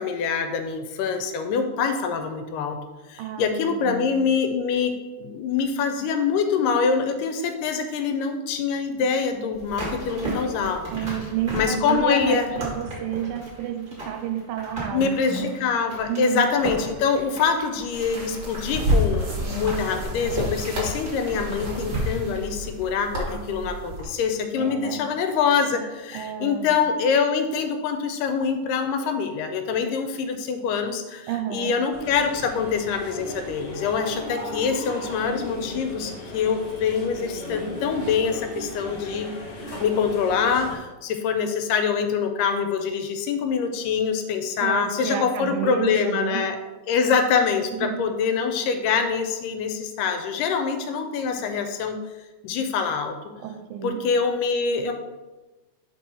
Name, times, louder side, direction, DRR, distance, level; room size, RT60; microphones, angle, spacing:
voice 1, 0.0-2.8 3.1-4.9 5.2-10.9 11.5-12.5 14.9-46.6 46.9-52.0 52.4-53.2 53.8-54.9, left 6 dB, 80° left, 6 dB, 2.0 m, -25 dB
voice 2, 3.2-4.0 10.9-15.5 16.1-16.5 23.3-23.9 24.6-25.1 26.1-26.7 31.3-31.8 44.6-46.4 47.8-48.0 53.4-54.0, right 9 dB, 85° right, 4 dB, 2.3 m, -30 dB
sound 1, 9.5-23.5 23.8-23.9, right 1 dB, 35° right, 0.7 m, -37 dB
sound 2, 17.9-24.0, equal, 60° right, 1.0 m, -29 dB
sound 3, 31.9-40.8, equal, 50° left, 1.2 m, -36 dB
4.6 x 4.5 x 5.4 m, 1.2 s
omnidirectional pair, 4.1 m